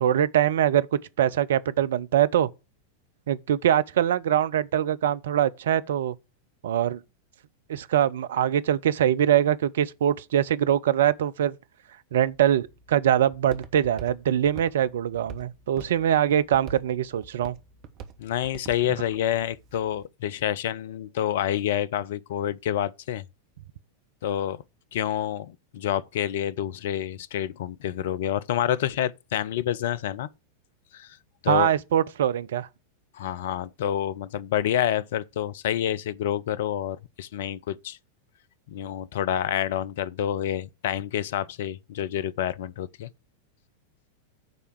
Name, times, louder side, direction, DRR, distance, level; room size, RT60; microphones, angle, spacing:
voice 1, 0.0-2.5 3.3-6.1 6.6-7.0 7.7-11.6 12.1-17.6 31.5-32.7, right 10 dB, 60° right, 0.4 m, -23 dB
Walk footsteps, 12.1-20.1, right 6 dB, 40° right, 1.0 m, -46 dB
voice 2, 18.2-23.2 24.2-24.6 24.9-30.3 30.9-31.2 31.4-31.7 33.1-38.0 38.7-43.1, left 11 dB, 55° left, 0.4 m, -28 dB
9.2 x 3.4 x 6.8 m
figure-of-eight pair, 90°, 0 cm